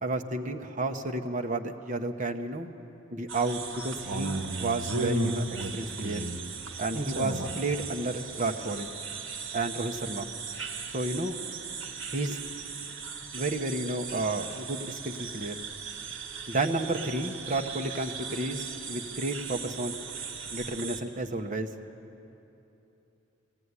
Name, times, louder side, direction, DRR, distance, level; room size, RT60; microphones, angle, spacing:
voice 1, 0.0-2.7 3.1-6.3 6.8-8.9 9.5-10.3 10.9-11.4 12.1-12.4 13.3-15.6 16.5-20.0 20.5-21.7, right 2 dB, 40° right, 4 dB, 1.1 m, -31 dB
sound 1, 3.3-21.0, right 3 dB, 75° right, 1.6 m, -36 dB
19.0 x 16.0 x 9.8 m, 2.9 s
head